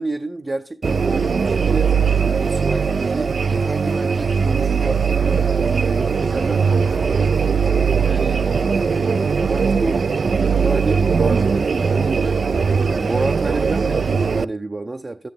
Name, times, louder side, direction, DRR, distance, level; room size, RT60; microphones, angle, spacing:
voice 1, 0.0-1.9 2.4-5.4 5.9-7.3 8.0-8.5 9.4-10.0 10.5-15.3, right 2 dB, 30° right, 0.7 m, -29 dB
sound 1, 0.8-14.4, right 5 dB, 70° right, 0.5 m, -19 dB
12.5 x 9.8 x 3.5 m
wide cardioid pair, 120°, 0 cm